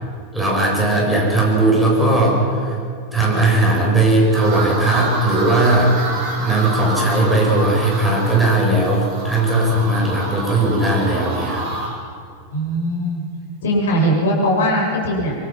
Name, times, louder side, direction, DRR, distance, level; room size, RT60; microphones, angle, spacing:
voice 1, 0.3-2.8 3.1-6.0 6.4-11.7, right 2 dB, 5° right, -3 dB, 8.0 m, -17 dB
sound 1, 4.3-11.9, right 2 dB, 30° right, 7.4 m, -28 dB
voice 2, 12.5-13.2 13.6-15.4, equal, 60° left, -2 dB, 7.1 m, -19 dB
25.5 x 23.0 x 6.0 m, 2.4 s
figure-of-eight pair, 90°, 0 cm